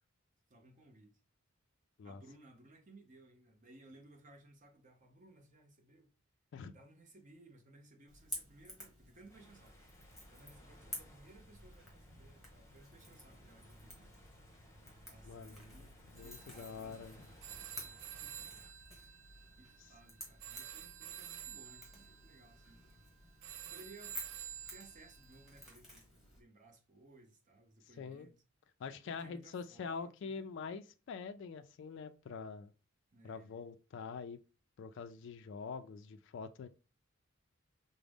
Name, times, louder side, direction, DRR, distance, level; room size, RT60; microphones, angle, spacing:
voice 1, 0.5-1.2 2.0-6.1 6.7-9.8 10.3-14.1 15.0-17.1 18.2-18.5 19.6-22.8 23.7-24.2 24.7-26.1 26.4-28.4 29.1-30.5 33.1-33.7, right 2 dB, 40° right, 0.7 m, -60 dB
Crackle / Crack, 8.1-26.4, left 1 dB, ahead, 1.4 m, -53 dB
sound 1, 9.3-18.7, equal, 15° left, 1.0 m, -60 dB
voice 2, 15.2-17.3 19.8-19.9 28.0-28.3 28.8-32.7 33.2-34.4 34.8-36.7, left 5 dB, 60° left, 0.3 m, -45 dB
sound 2, 16.2-25.7, right 11 dB, 65° right, 0.3 m, -50 dB
4.9 x 2.0 x 3.4 m
head